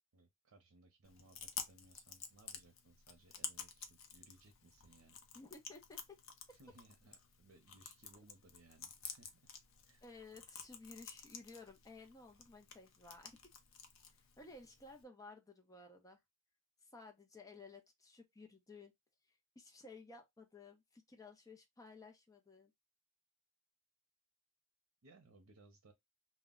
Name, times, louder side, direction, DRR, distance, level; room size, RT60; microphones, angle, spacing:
voice 1, 0.1-5.2 6.5-9.5 9.9-10.0 25.0-25.9, right 2 dB, 85° right, 0.6 m, -64 dB
Chewing mastication, 1.0-15.0, left 7 dB, 65° left, 0.5 m, -52 dB
voice 2, 5.3-6.2 6.5-6.6 10.0-13.5 14.1-16.2 16.8-18.9 19.6-22.7, left 3 dB, 15° left, 0.5 m, -56 dB
2.2 x 2.1 x 3.6 m
head